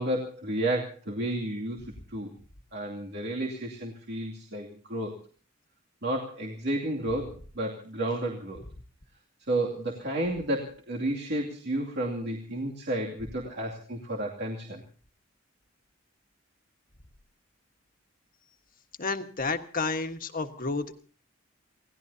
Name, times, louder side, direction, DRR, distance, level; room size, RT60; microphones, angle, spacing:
voice 1, 0.0-1.8 2.1-2.3 2.7-5.2 6.0-8.6 9.5-14.8, right 1 dB, 60° right, -1 dB, 2.6 m, -31 dB
voice 2, 19.0-21.0, left 3 dB, 45° left, 6 dB, 1.5 m, -31 dB
28.5 x 17.5 x 2.8 m, 0.40 s
head